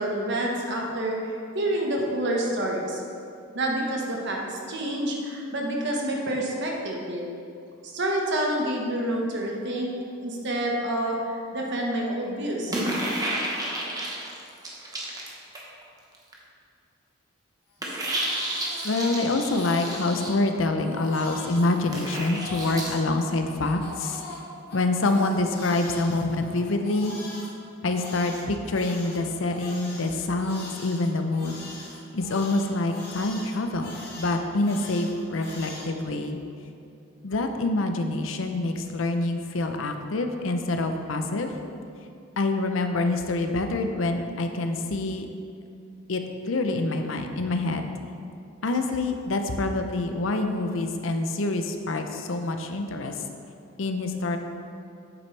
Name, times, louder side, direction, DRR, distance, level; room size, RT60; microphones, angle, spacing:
voice 1, 0.0-3.0 3.5-7.3 7.8-9.9 10.2-12.7, right 1 dB, 60° right, -1 dB, 1.3 m, -28 dB
sound 1, 12.7-15.8 16.1-16.3 17.8-20.3 21.9-22.9, right 1 dB, 20° right, 1.2 m, -31 dB
Crying sobbing, 17.7-19.2 19.5-20.3 20.8-23.0 23.6-27.5 27.9-35.9, left 2 dB, 55° left, 1.9 m, -42 dB
voice 2, 18.8-24.2 24.7-27.2 27.8-31.6 32.1-36.4 37.2-41.5 42.4-45.3 46.1-47.9 48.6-53.2 53.8-54.4, left 2 dB, 75° left, 6 dB, 0.6 m, -26 dB
8.7 x 7.6 x 3.3 m, 2.5 s
head